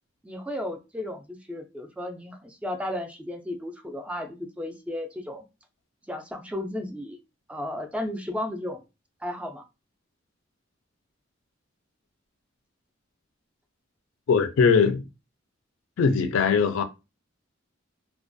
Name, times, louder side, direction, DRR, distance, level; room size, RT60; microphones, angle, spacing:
voice 1, 0.2-5.4 6.0-7.2 7.5-8.8 9.2-9.6, left 1 dB, 5° right, 0.3 m, -34 dB
voice 2, 14.3-15.1 16.0-16.8, left 5 dB, 80° left, 0.4 m, -21 dB
2.3 x 2.1 x 2.5 m
head